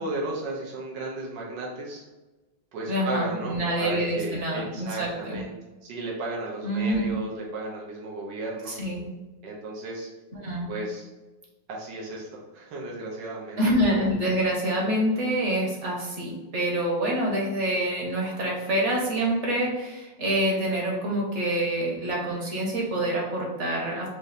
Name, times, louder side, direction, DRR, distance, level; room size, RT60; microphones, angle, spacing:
voice 1, 0.0-2.0 2.7-5.5 5.8-8.8 9.4-10.1 10.7-11.1 11.7-12.3 12.5-13.6, right 2 dB, 75° right, -3 dB, 1.7 m, -34 dB
voice 2, 2.9-5.5 6.6-7.1 8.7-9.1 10.3-10.7 13.6-24.1, right 1 dB, 45° right, -2 dB, 1.4 m, -26 dB
5.4 x 2.8 x 3.2 m, 1.1 s
omnidirectional pair, 2.0 m